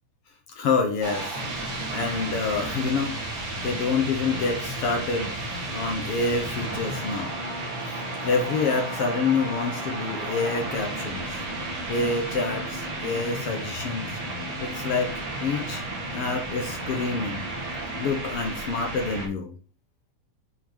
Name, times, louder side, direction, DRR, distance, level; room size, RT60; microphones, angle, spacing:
voice 1, 0.5-7.4 7.8-11.4 11.9-14.2 14.6-15.1 15.4-15.8 16.1-17.5 17.9-19.5, left 4 dB, 65° left, 3 dB, 1.4 m, -27 dB
sound 1, 1.0-19.3, right 2 dB, 80° right, 4.1 m, -33 dB
9.1 x 3.6 x 4.6 m, 0.41 s
omnidirectional pair, 3.9 m